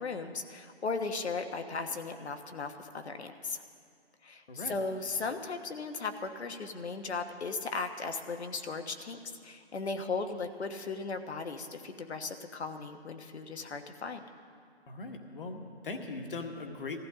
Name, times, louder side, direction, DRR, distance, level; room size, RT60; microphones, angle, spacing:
voice 1, 0.0-3.6 4.2-14.2, left 4 dB, 75° left, 6 dB, 1.3 m, -37 dB
voice 2, 4.5-4.8 14.9-17.0, left 3 dB, 55° left, 4 dB, 1.6 m, -40 dB
20.5 x 15.0 x 3.7 m, 2.2 s
hypercardioid pair, 165°, 33 cm